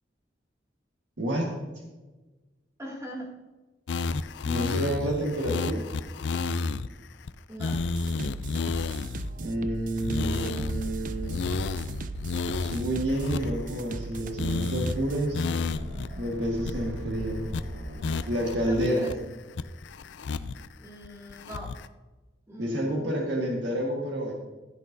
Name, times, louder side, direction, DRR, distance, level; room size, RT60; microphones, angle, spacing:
voice 1, 1.2-1.5 4.4-5.8 9.4-11.5 12.6-15.4 16.2-17.4 18.3-19.1 22.6-24.3, right 1 dB, 90° right, -1 dB, 1.6 m, -29 dB
voice 2, 2.8-3.3 7.5-7.7 18.6-19.1 20.8-21.7 22.5-23.1, equal, 15° right, -3 dB, 2.3 m, -40 dB
sound 1, 3.9-6.9 7.3-7.4 7.6-9.3 10.0-10.9 11.2-14.1 14.4-14.9 15.3-16.1 16.3-16.4 16.6-17.1 17.5-17.6 18.0-19.1 19.6-20.7 21.0-21.9, left 4 dB, 75° left, 0.4 m, -31 dB
sound 2, 7.7-15.3, right 3 dB, 45° right, 0.4 m, -38 dB
sound 3, 10.6-18.4, right 1 dB, 70° right, 1.0 m, -40 dB
14.5 x 8.4 x 2.7 m, 1.2 s
head